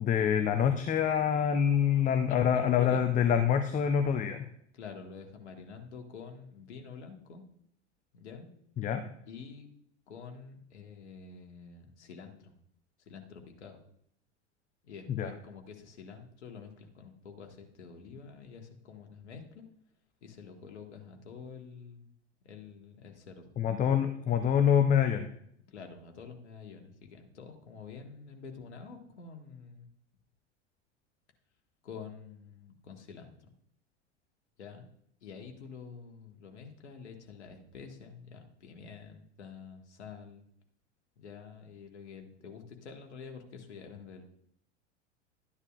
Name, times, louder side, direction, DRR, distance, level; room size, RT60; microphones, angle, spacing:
voice 1, 0.0-4.5 8.8-9.1 15.1-15.3 23.6-25.3, left 8 dB, 20° left, 8 dB, 0.6 m, -26 dB
voice 2, 2.3-3.0 4.7-7.4 8.1-8.5 9.3-9.7 10.1-12.5 13.1-13.8 14.8-19.7 20.2-22.1 22.4-23.5 25.7-29.9 31.8-33.3 34.6-34.8 35.2-40.4 41.2-44.2, left 5 dB, 65° left, 4 dB, 1.6 m, -48 dB
13.0 x 9.7 x 2.4 m, 0.68 s
figure-of-eight pair, 80°, 36 cm